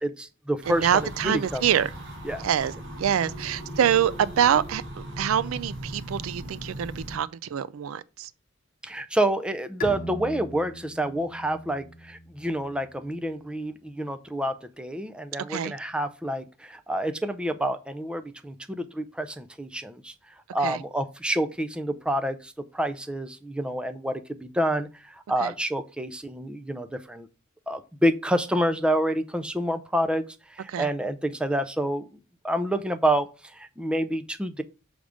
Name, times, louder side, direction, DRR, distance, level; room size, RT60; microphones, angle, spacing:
voice 1, 0.0-1.6 2.2-2.5 8.8-20.1 20.5-27.3 27.7-30.2 30.5-32.1 32.4-34.6, right 1 dB, 5° right, 0.4 m, -28 dB
sound 1, 0.6-7.2, right 1 dB, 60° right, 2.7 m, -38 dB
voice 2, 0.7-1.9 2.4-2.7 3.0-8.3 15.5-15.7 20.6-20.8 25.4-25.5 30.7-30.9, right 9 dB, 85° right, 0.4 m, -25 dB
Bowed string instrument, 9.8-13.3, left 1 dB, 40° left, 0.9 m, -41 dB
6.4 x 3.5 x 4.9 m
head